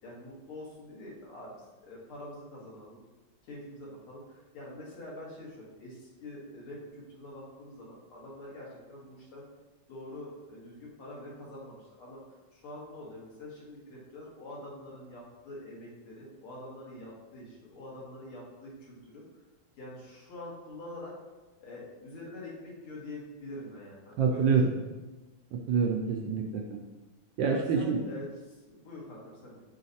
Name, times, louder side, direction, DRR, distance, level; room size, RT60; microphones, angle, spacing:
voice 1, 0.0-3.0 3.4-9.4 9.9-12.2 12.5-19.2 19.8-21.1 21.6-24.8 27.4-29.6, left 1 dB, 75° left, -4 dB, 2.4 m, -45 dB
voice 2, 24.2-24.7 25.5-26.6 27.4-28.0, right 5 dB, 70° right, 1 dB, 1.1 m, -26 dB
6.3 x 4.0 x 4.1 m, 1.2 s
omnidirectional pair, 2.4 m